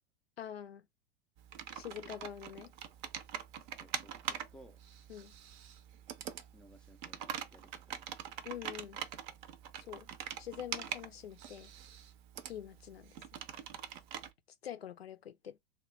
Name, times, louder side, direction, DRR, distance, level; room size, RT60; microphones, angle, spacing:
voice 1, 0.4-0.8 1.7-2.7 5.1-5.3 8.4-9.0 9.8-10.1 10.4-11.7 12.5-13.2 14.6-15.6, left 10 dB, 90° left, 0.5 m, -45 dB
Computer keyboard, 1.4-14.3, right 9 dB, 50° right, 0.5 m, -44 dB
voice 2, 3.8-4.8 6.5-8.2, equal, 5° left, 0.3 m, -60 dB
3.0 x 2.2 x 3.0 m
hypercardioid pair, 95°, 30 cm